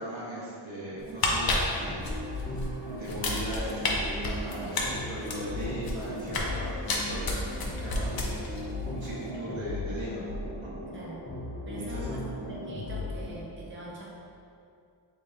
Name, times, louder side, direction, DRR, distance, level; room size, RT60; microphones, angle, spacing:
voice 1, 0.0-2.2 2.9-10.3 10.6-10.7 11.7-12.1, right 1 dB, 85° right, -8 dB, 1.4 m, -38 dB
sound 1, 1.0-2.7 3.0-3.9 4.2-6.5 6.9-8.6 8.9-9.1, left 3 dB, 55° left, 0.6 m, -30 dB
sound 2, 1.8-13.3, left 2 dB, 25° left, 1.0 m, -37 dB
voice 2, 10.9-11.2 11.7-14.0, right 1 dB, 25° right, -5 dB, 0.6 m, -42 dB
5.1 x 3.5 x 2.7 m, 2.6 s
wide cardioid pair, 155°, 45 cm